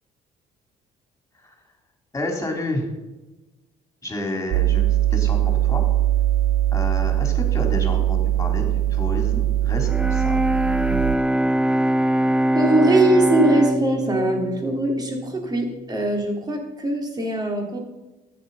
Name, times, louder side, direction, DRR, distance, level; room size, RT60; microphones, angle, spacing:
voice 1, 2.1-2.9 4.0-5.8 6.7-8.6 8.9-10.7, left 1 dB, 15° left, 3 dB, 3.7 m, -30 dB
sound 1, 4.5-11.2, right 13 dB, 70° right, 0.7 m, -21 dB
Bowed string instrument, 9.8-15.8, equal, 5° right, 0.4 m, -23 dB
voice 2, 12.5-17.8, right 1 dB, 25° right, 1 dB, 3.3 m, -21 dB
13.5 x 9.8 x 5.6 m, 1.1 s
cardioid pair, 110°, 17 cm